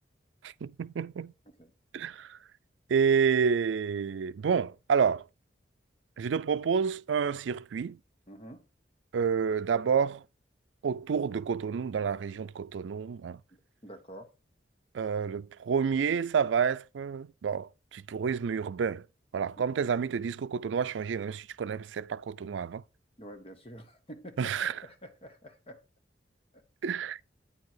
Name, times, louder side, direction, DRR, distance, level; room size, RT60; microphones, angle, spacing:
voice 1, 0.4-1.3 1.9-2.4 2.9-5.3 6.2-8.0 9.1-10.2 10.8-13.4 14.9-19.1 19.3-22.8 24.4-24.7 26.8-27.2, right 6 dB, 90° right, 0.4 m, -29 dB
voice 2, 8.3-8.6 13.5-14.3 19.6-19.8 23.2-24.6 24.8-25.8 26.5-26.6, equal, 30° left, 1.4 m, -48 dB
8.7 x 4.7 x 4.5 m
head